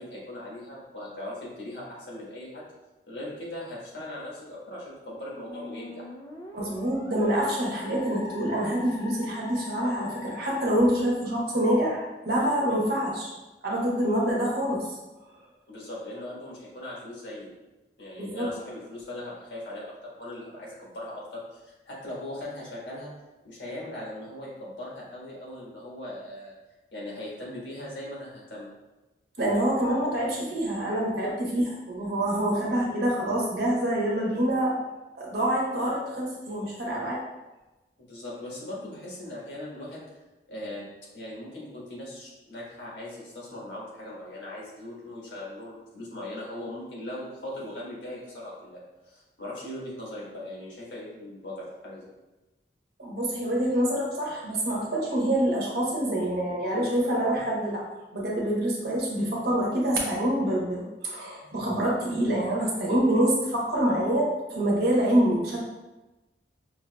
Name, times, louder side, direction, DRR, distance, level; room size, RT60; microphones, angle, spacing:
voice 1, 0.0-2.7 3.1-6.0 15.7-17.5 18.0-23.1 23.4-26.5 26.9-28.7 38.0-40.0 40.5-40.9 41.1-48.8 49.0-52.1 61.4-61.5, left 1 dB, 85° left, -5 dB, 1.4 m, -39 dB
Musical instrument, 5.5-10.7, left 3 dB, 20° left, 0.3 m, -42 dB
voice 2, 6.5-13.3 13.6-15.0 18.2-18.5 29.4-34.8 35.1-37.2 53.0-57.8 58.1-65.6, right 1 dB, 65° right, -4 dB, 1.0 m, -26 dB
5.6 x 2.7 x 2.2 m, 1.1 s
head